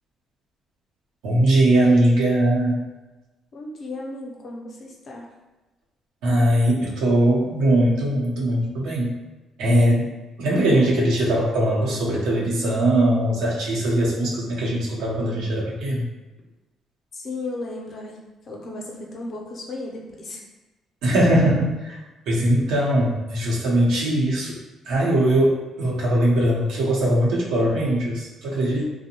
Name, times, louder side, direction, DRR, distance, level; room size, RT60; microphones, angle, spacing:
voice 1, 1.2-2.8 6.2-9.1 9.6-10.1 10.4-16.1 21.0-22.0 22.3-24.6 24.9-28.9, right 1 dB, 85° right, -4 dB, 0.7 m, -20 dB
voice 2, 3.5-5.3 17.1-20.4, left 2 dB, 50° left, -1 dB, 0.5 m, -35 dB
2.6 x 2.0 x 2.8 m, 1.1 s
cardioid pair, 110°, 0 cm